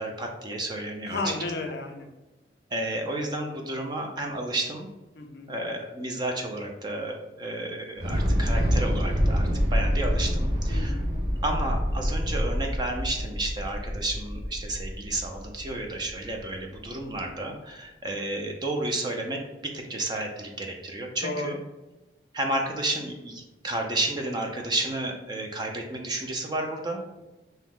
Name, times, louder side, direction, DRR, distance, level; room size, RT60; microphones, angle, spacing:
voice 1, 0.0-1.5 2.7-4.9 5.5-11.0 11.4-21.6 22.3-27.0, right 2 dB, 25° right, 2 dB, 0.3 m, -32 dB
voice 2, 1.1-2.1 5.1-5.5 10.7-11.1 21.2-21.6, left 3 dB, 60° left, 3 dB, 0.4 m, -33 dB
Thunder / Explosion, 8.0-16.2, equal, 50° right, 1.3 m, -26 dB
2.7 x 2.0 x 3.6 m, 1.0 s
head